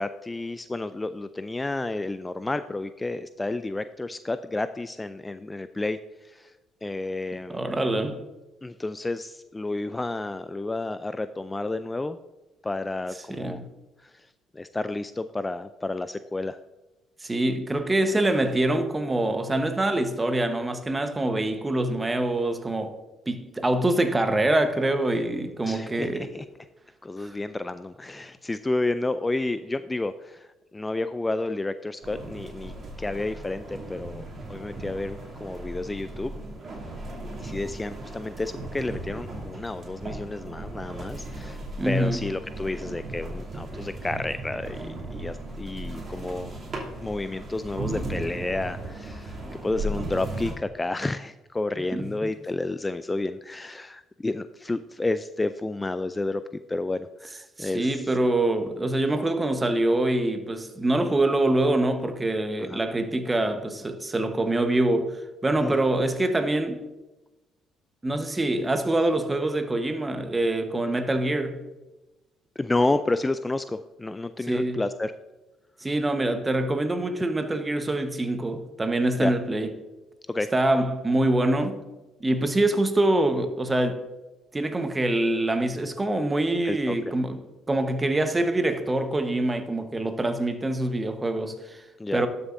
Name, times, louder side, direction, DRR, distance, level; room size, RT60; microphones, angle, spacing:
voice 1, 0.0-6.5 6.8-7.6 8.6-12.2 12.6-13.6 14.0-16.6 25.6-26.5 27.0-34.2 34.5-36.3 37.4-56.4 56.7-58.0 62.7-62.8 65.6-65.8 72.6-75.1 79.2-79.3 80.3-80.5 86.6-87.1 92.0-92.2, left 2 dB, 20° left, 0.3 m, -31 dB
voice 2, 7.5-8.2 13.3-13.7 17.2-22.9 23.3-26.3 27.2-27.3 41.8-42.3 51.9-52.1 57.6-66.8 68.0-71.6 74.5-74.8 75.8-79.7 80.5-81.8 82.2-84.0 84.5-87.4 87.7-91.8 92.1-92.3, right 1 dB, 20° right, 1.1 m, -25 dB
sound 1, 32.0-50.5, right 2 dB, 40° right, 2.8 m, -37 dB
12.0 x 6.9 x 2.6 m
supercardioid pair, 70°, 0 cm